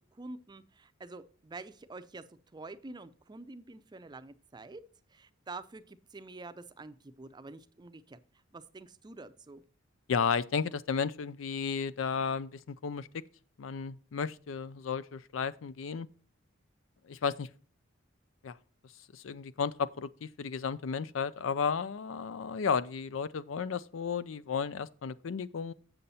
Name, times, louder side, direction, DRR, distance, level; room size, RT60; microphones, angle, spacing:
voice 1, 0.1-2.2 2.5-4.8 5.1-8.2 8.5-9.6, right 3 dB, 20° right, 0.5 m, -47 dB
voice 2, 10.1-13.1 13.6-16.1 17.1-17.5 18.4-18.6 19.1-25.7, left 6 dB, 80° left, 0.4 m, -33 dB
7.7 x 7.0 x 4.2 m
head